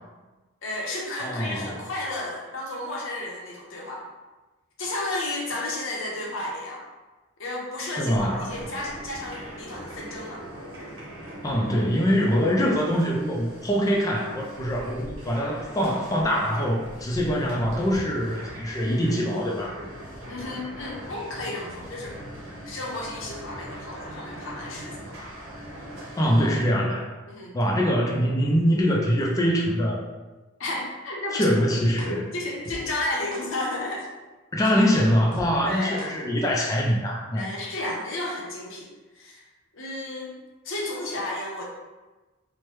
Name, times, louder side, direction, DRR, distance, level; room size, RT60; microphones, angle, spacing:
voice 1, 0.6-4.1 4.8-6.8 7.4-10.4 20.3-22.2 22.6-25.2 27.3-27.5 30.6-31.5 31.8-34.1 35.6-36.1 37.3-38.9 39.2-39.4 39.7-40.4 40.6-41.6, left 2 dB, 75° left, -2 dB, 0.7 m, -32 dB
voice 2, 1.2-1.8 7.9-8.5 11.4-19.8 26.2-27.1 27.5-30.0 31.3-32.2 34.5-37.5, equal, 15° left, -2 dB, 0.3 m, -23 dB
sound 1, 8.1-26.6, equal, 80° right, 1.0 m, -41 dB
sound 2, 32.0-32.1 32.6-32.8 33.3-33.4 34.0-34.1 34.6-34.7 35.3-35.4 36.0-36.1, right 1 dB, 40° right, 0.6 m, -39 dB
3.0 x 2.1 x 3.1 m, 1.2 s
head